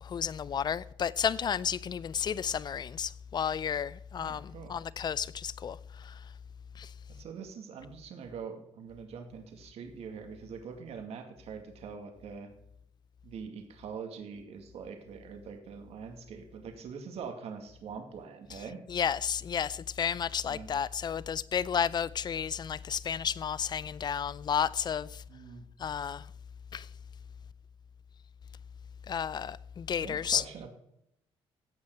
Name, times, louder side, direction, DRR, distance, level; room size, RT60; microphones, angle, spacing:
voice 1, 0.0-6.1 6.8-6.9 18.9-25.2 25.8-26.3 26.7-26.9 29.1-30.4, left 7 dB, 40° left, 0.5 m, -32 dB
voice 2, 4.2-4.8 7.1-12.5 13.2-18.8 20.5-20.7 25.3-25.6 30.0-30.7, right 6 dB, 70° right, 2.2 m, -44 dB
16.0 x 5.7 x 4.7 m
cardioid pair, 100°, 11 cm